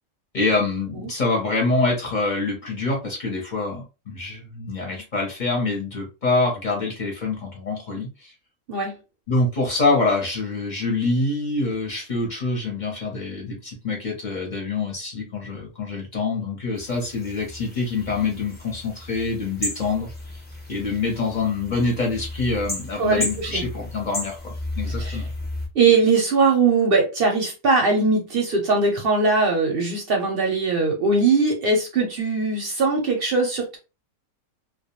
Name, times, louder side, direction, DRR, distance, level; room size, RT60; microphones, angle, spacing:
voice 1, 0.3-8.3 9.3-20.1 20.7-25.3, left 3 dB, 45° left, 0.7 m, -25 dB
sound 1, 16.8-25.7, left 1 dB, 15° left, 0.3 m, -34 dB
voice 2, 23.0-23.6 25.0-25.2 25.8-33.8, right 4 dB, 60° right, 0.7 m, -20 dB
2.2 x 2.2 x 2.9 m
omnidirectional pair, 1.4 m